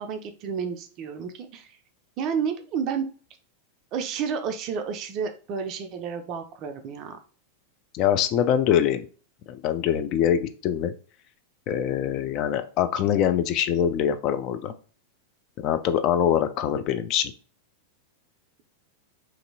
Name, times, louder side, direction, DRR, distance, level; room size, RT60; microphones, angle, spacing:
voice 1, 0.0-1.8 2.2-3.1 3.9-7.2, right 6 dB, 40° right, 7 dB, 0.4 m, -31 dB
voice 2, 7.9-9.1 9.5-10.9 11.7-14.7 15.6-17.3, left 9 dB, 40° left, 9 dB, 0.3 m, -24 dB
2.9 x 2.5 x 2.7 m, 0.39 s
figure-of-eight pair, 90°, 0 cm